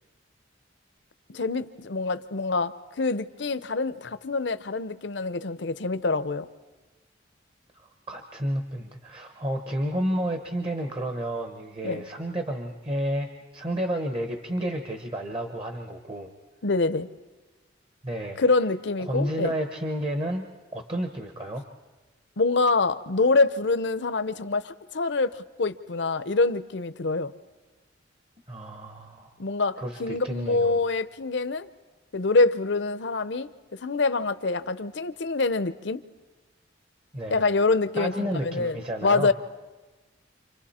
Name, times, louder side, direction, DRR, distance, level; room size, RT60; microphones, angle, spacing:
voice 1, 1.3-6.5 11.8-12.0 16.6-17.1 18.4-19.5 22.4-27.3 29.4-31.7 32.1-36.0 37.3-39.3, left 3 dB, 65° left, 13 dB, 0.7 m, -25 dB
voice 2, 7.7-16.3 18.0-18.4 19.1-21.6 28.5-29.3 29.8-30.8 37.1-37.4 38.0-39.3, right 1 dB, 30° right, 5 dB, 1.1 m, -31 dB
29.5 x 27.0 x 4.3 m, 1.2 s
head